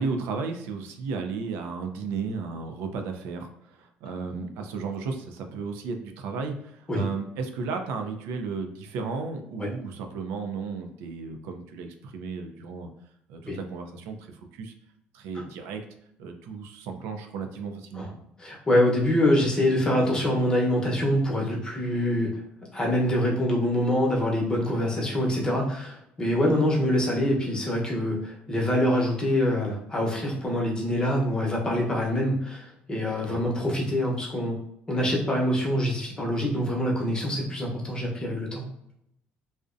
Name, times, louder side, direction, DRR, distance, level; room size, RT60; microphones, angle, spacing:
voice 1, 0.0-12.9 13.3-14.7 15.1-15.8 16.2-18.1 26.3-26.5 33.2-33.5, right 4 dB, 90° right, 5 dB, 0.4 m, -34 dB
voice 2, 18.4-22.4 22.7-34.6 34.9-38.6, left 1 dB, 20° left, -2 dB, 0.8 m, -25 dB
2.5 x 2.0 x 2.5 m, 0.77 s
cardioid pair, 115°, 4 cm